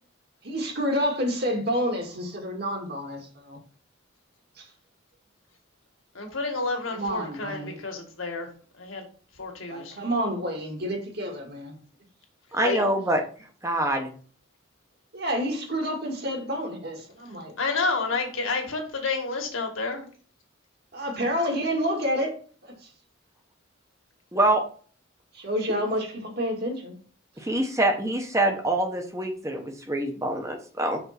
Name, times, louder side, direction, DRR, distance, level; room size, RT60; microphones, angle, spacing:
voice 1, 0.4-3.6 4.6-4.7 6.9-7.8 9.7-11.8 15.1-17.5 18.7-18.8 20.9-22.4 25.3-26.9, equal, 50° right, 2 dB, 2.0 m, -29 dB
voice 2, 6.1-8.5 8.8-9.0 9.4-10.0 12.5-12.8 17.6-20.0, left 3 dB, 80° left, 3 dB, 2.0 m, -29 dB
voice 3, 12.5-13.2 13.6-14.1 24.3-24.6 27.4-31.0, right 1 dB, 15° right, 4 dB, 0.9 m, -25 dB
5.9 x 4.5 x 5.8 m, 0.42 s
head